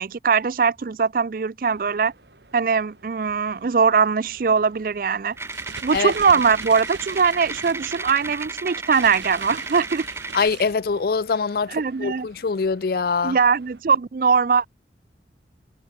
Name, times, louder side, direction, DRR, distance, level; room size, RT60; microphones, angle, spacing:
voice 1, 0.0-2.1 2.5-5.4 5.8-10.1 11.7-12.3 13.2-14.7, right 5 dB, 50° right, 0.4 m, -21 dB
sound 1, 1.6-13.8, right 2 dB, 70° right, 3.6 m, -53 dB
sound 2, 5.3-11.2, right 7 dB, 85° right, 0.7 m, -41 dB
sound 3, 5.4-10.5, right 3 dB, 15° right, 1.7 m, -34 dB
voice 2, 10.3-13.4, left 5 dB, 55° left, 0.4 m, -23 dB
head